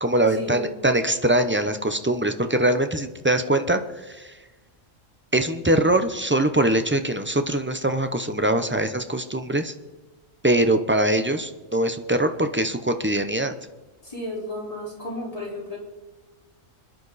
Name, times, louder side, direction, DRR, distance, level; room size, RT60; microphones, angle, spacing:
voice 1, 0.0-4.4 5.3-9.7 10.4-13.5, right 1 dB, 15° right, 8 dB, 0.4 m, -22 dB
voice 2, 14.0-15.8, left 1 dB, 25° left, -4 dB, 4.4 m, -33 dB
26.5 x 10.5 x 4.1 m, 1.2 s
omnidirectional pair, 1.4 m